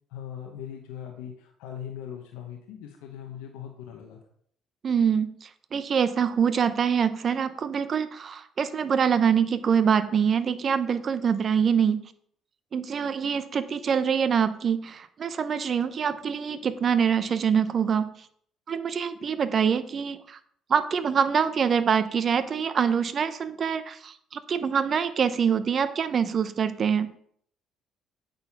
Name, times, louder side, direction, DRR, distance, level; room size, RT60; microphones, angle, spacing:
voice 1, 0.1-4.2, left 9 dB, 90° left, 2 dB, 1.1 m, -40 dB
voice 2, 4.8-12.0 12.7-18.1 18.7-20.4 20.7-27.1, right 7 dB, 45° right, 12 dB, 0.7 m, -25 dB
8.5 x 4.2 x 5.8 m, 0.63 s
supercardioid pair, 85°, 0 cm